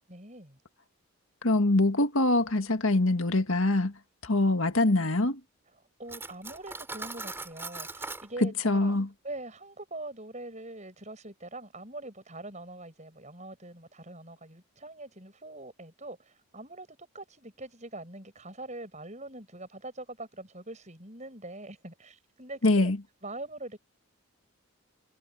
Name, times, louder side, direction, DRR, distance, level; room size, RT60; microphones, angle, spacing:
voice 1, 0.1-0.6 5.7-9.0 9.2-22.9 23.2-23.8, right 2 dB, 30° right, 7.8 m, -43 dB
voice 2, 1.4-3.9 4.2-5.4 8.4-9.1 22.6-23.0, left 2 dB, 65° left, 1.9 m, -24 dB
Cutlery silverware, 6.1-8.3, right 3 dB, 10° right, 3.7 m, -40 dB
head